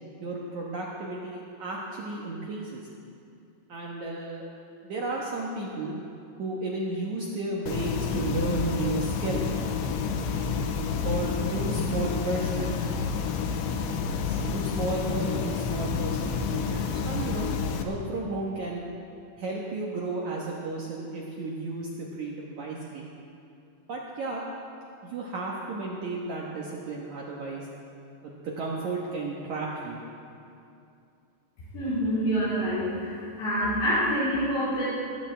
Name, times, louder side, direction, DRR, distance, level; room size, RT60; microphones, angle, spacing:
voice 1, 0.2-2.9 3.7-4.4 4.8-6.0 6.4-9.4 11.0-12.8 14.2-17.5 17.8-18.8 19.4-23.1 23.9-24.4 25.0-27.7 28.2-30.0, right 2 dB, 75° right, -3 dB, 1.7 m, -33 dB
sound 1, 7.7-17.8, left 5 dB, 90° left, 3.2 m, -29 dB
voice 2, 31.7-34.9, equal, 75° left, -13 dB, 6.1 m, -26 dB
20.5 x 16.5 x 3.4 m, 2.6 s
omnidirectional pair, 5.2 m